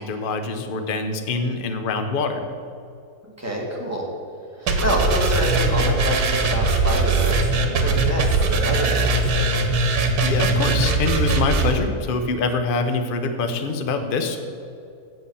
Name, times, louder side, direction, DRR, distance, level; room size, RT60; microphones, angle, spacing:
voice 1, 0.0-2.4 10.2-14.4, left 4 dB, 45° left, 7 dB, 0.8 m, -25 dB
voice 2, 3.4-4.1 4.6-9.5, equal, 10° right, -3 dB, 1.7 m, -27 dB
sound 1, 4.7-11.7, right 3 dB, 75° right, 1.5 m, -20 dB
7.7 x 7.6 x 7.0 m, 2.4 s
omnidirectional pair, 1.7 m